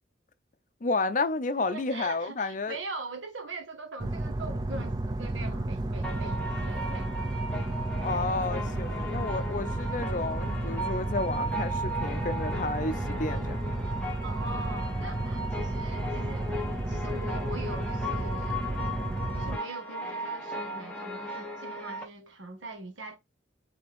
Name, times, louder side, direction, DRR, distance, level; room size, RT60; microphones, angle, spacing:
voice 1, 0.8-2.8 8.0-13.6, left 3 dB, 40° left, 0.5 m, -31 dB
voice 2, 1.6-7.1 14.2-16.6 16.9-18.6 19.3-23.2, right 3 dB, 80° right, 1.2 m, -42 dB
sound 1, 4.0-19.6, right 1 dB, 20° right, 0.4 m, -32 dB
sound 2, 6.0-22.0, equal, 5° left, 1.0 m, -37 dB
4.9 x 3.5 x 3.1 m
head